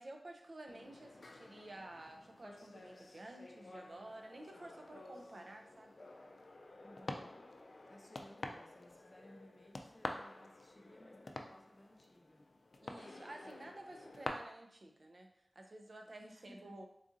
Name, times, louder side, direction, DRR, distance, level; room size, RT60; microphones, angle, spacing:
voice 1, 0.0-5.9 12.8-15.3 15.6-16.8, right 1 dB, 60° right, 3 dB, 0.5 m, -52 dB
sound 1, 0.7-14.3, left 2 dB, 70° left, 0.3 m, -50 dB
voice 2, 6.8-7.5 7.9-12.5 16.2-16.8, left 1 dB, 20° left, 1 dB, 0.7 m, -60 dB
3.9 x 2.6 x 3.6 m, 0.76 s
wide cardioid pair, 65°, 0 cm